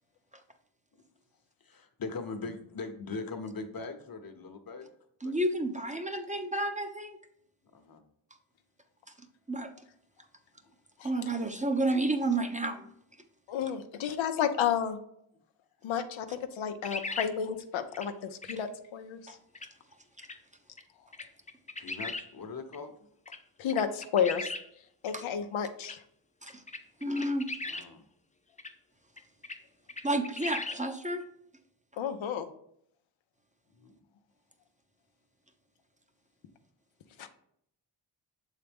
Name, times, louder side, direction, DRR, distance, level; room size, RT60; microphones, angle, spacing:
voice 1, 1.6-4.9 5.2-5.3 7.7-8.0 21.8-23.1 27.6-28.1 33.8-34.0, left 4 dB, 50° left, 7 dB, 1.0 m, -41 dB
voice 2, 5.2-7.2 9.5-9.7 11.0-12.9 19.3-19.4 20.2-20.3 25.1-25.2 26.4-26.6 27.0-27.5 30.0-31.2, right 2 dB, 15° right, 6 dB, 0.7 m, -30 dB
voice 3, 13.5-15.0 15.8-19.4 23.6-24.5 25.0-26.0 32.0-32.5 37.2-37.3, left 8 dB, 85° left, 7 dB, 0.6 m, -31 dB
sound 1, 16.8-17.3 17.9-18.1 18.4-18.6 19.5-19.7 20.2-20.4 20.8-20.9 21.1-22.2 22.7-22.8 23.3-23.4 23.7-24.6 25.1-25.2 25.8-25.9 26.5-27.9 28.6-28.7 29.2-29.6 29.9-30.8, left 3 dB, 15° left, 0.7 m, -38 dB
6.6 x 4.0 x 3.5 m, 0.71 s
cardioid pair, 50°, 45 cm